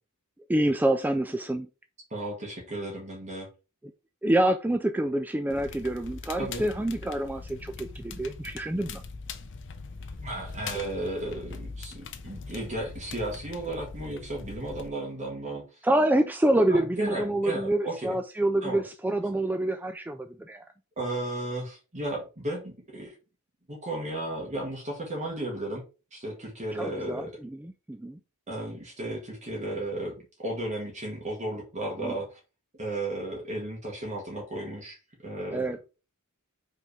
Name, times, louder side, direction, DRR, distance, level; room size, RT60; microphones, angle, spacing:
voice 1, 0.5-1.7 4.2-9.0 15.8-20.6 26.8-27.3 27.5-28.2 32.0-32.1 35.5-35.8, right 1 dB, 10° right, 7 dB, 0.3 m, -27 dB
voice 2, 2.1-3.5 6.4-6.6 10.1-15.8 16.7-18.2 18.6-18.8 21.0-23.2 23.7-25.8 26.1-27.3 28.5-32.4 32.8-35.0 35.2-35.8, right 1 dB, 35° right, -2 dB, 1.8 m, -34 dB
Crackle, 5.5-14.9, left 4 dB, 60° left, 0.8 m, -41 dB
5.2 x 3.8 x 4.9 m, 0.32 s
head